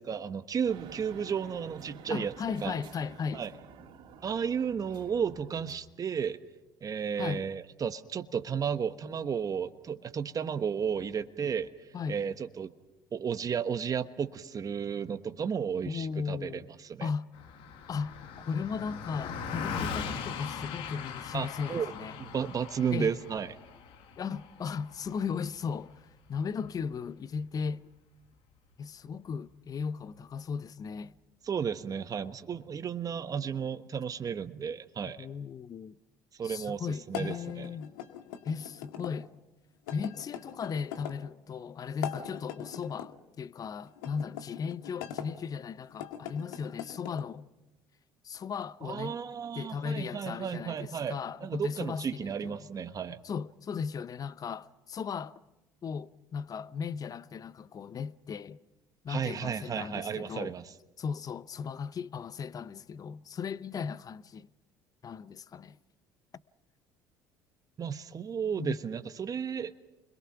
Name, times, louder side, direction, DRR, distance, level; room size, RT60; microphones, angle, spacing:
voice 1, 0.1-2.3 2.6-2.8 3.3-3.5 4.2-6.4 6.8-11.7 12.1-12.7 13.1-17.1 21.3-21.9 22.2-23.5 31.4-35.3 36.4-36.8 37.1-37.7 48.8-53.2 59.1-60.6 67.8-69.7, right 7 dB, 40° right, 1.3 m, -33 dB
sound 1, 0.7-5.8, right 6 dB, 60° right, 3.3 m, -50 dB
voice 2, 2.1-3.5 7.2-7.5 11.9-12.2 15.8-16.6 17.0-17.3 17.9-22.2 22.9-23.2 24.2-25.9 26.3-27.9 28.8-31.1 35.2-36.0 36.4-37.9 38.4-39.3 39.9-47.5 48.2-49.2 49.5-52.7 53.2-55.4 55.8-58.6 59.0-60.5 61.0-64.5 65.0-65.8 68.6-68.8, left 6 dB, 40° left, 0.8 m, -36 dB
Car passing by, 17.3-26.9, left 6 dB, 65° left, 2.2 m, -40 dB
sound 2, 37.1-39.1 39.9-41.2 41.9-43.1 43.9-45.3 45.9-47.3, left 10 dB, 85° left, 1.9 m, -41 dB
29.5 x 22.0 x 5.9 m
hypercardioid pair, 65°, 9 cm